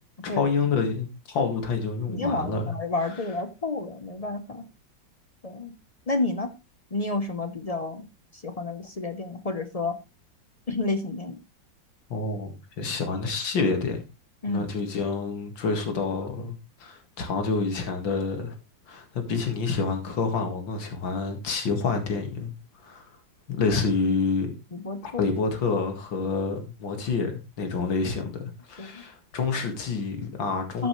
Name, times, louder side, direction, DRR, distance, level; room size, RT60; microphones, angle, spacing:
voice 1, 0.2-2.7 12.1-14.0 14.5-16.5 16.8-18.6 18.9-22.5 22.8-23.1 23.5-24.5 25.0-30.9, left 4 dB, 90° left, 2.6 m, -28 dB
voice 2, 2.1-4.7 5.4-5.7 6.1-6.5 6.9-8.1 8.4-10.0 10.7-11.4 14.4-14.7 24.7-25.2 28.8-29.0 30.8-30.9, left 3 dB, 40° left, 0.5 m, -30 dB
14.0 x 7.9 x 3.2 m
omnidirectional pair, 2.0 m